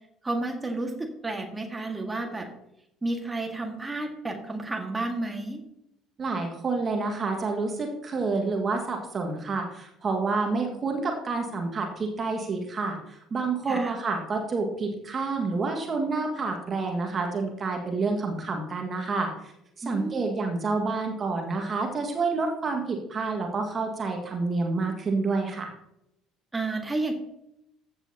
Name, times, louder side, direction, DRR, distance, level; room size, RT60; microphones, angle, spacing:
voice 1, 0.2-2.5 3.0-5.6 13.7-13.9 19.8-20.3 26.5-27.1, right 2 dB, 15° right, 3 dB, 1.8 m, -31 dB
voice 2, 6.2-19.3 19.9-25.7, right 3 dB, 30° right, 3 dB, 1.8 m, -28 dB
14.5 x 8.2 x 2.9 m, 0.81 s
figure-of-eight pair, 55°, 0 cm